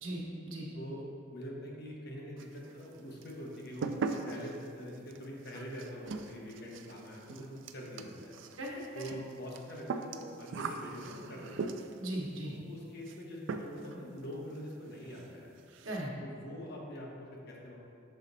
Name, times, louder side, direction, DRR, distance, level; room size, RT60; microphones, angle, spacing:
voice 1, 0.0-0.7 8.6-9.0 12.0-12.6 15.8-16.1, right 1 dB, 90° right, -2 dB, 1.1 m, -38 dB
voice 2, 0.7-8.3 8.9-11.7 12.4-15.5 16.2-17.8, equal, 55° left, -2 dB, 1.0 m, -44 dB
sound 1, 2.4-2.9 3.2-12.1 13.0-13.2 13.5-14.0 14.2-14.3 14.7-14.8 15.1-15.3 15.6-16.1, right 4 dB, 65° right, 0.3 m, -40 dB
6.5 x 4.0 x 4.0 m, 2.5 s
head